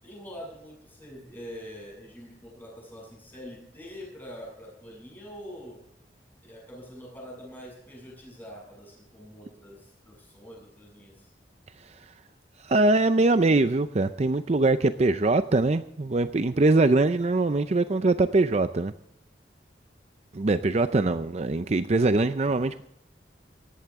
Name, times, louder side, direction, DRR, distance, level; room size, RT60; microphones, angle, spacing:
voice 1, 0.0-5.8 6.4-11.3, equal, 10° left, -2 dB, 7.5 m, -44 dB
voice 2, 12.6-18.9 20.3-22.8, right 2 dB, 40° right, 11 dB, 0.5 m, -23 dB
18.5 x 14.5 x 3.6 m, 0.74 s
head